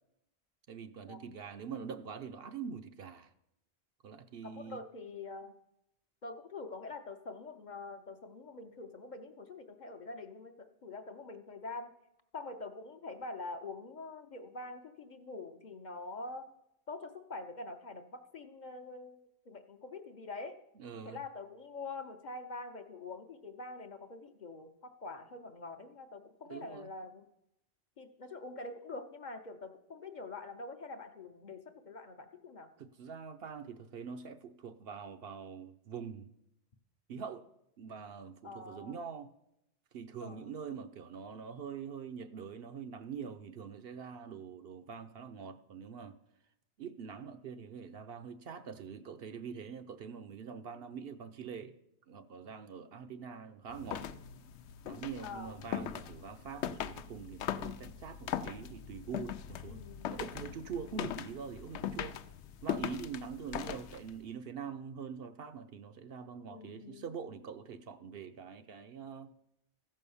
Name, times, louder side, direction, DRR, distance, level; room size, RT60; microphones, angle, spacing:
voice 1, 0.7-3.3 4.0-4.8 20.8-21.2 26.5-26.9 32.8-36.3 37.1-37.5 37.8-39.3 39.9-46.2 46.8-51.8 52.1-54.1 54.8-59.8 60.1-62.2 62.6-69.3, right 6 dB, 65° right, 0.8 m, -44 dB
voice 2, 4.4-5.5 6.2-11.9 12.3-16.5 16.9-20.6 21.0-27.2 28.0-32.7 38.4-39.0 40.2-40.5 55.2-55.6 59.7-60.1 66.5-67.0, left 3 dB, 45° left, 0.7 m, -45 dB
sound 1, 53.7-64.2, left 10 dB, 85° left, 0.9 m, -40 dB
14.5 x 5.5 x 6.9 m
omnidirectional pair, 1.2 m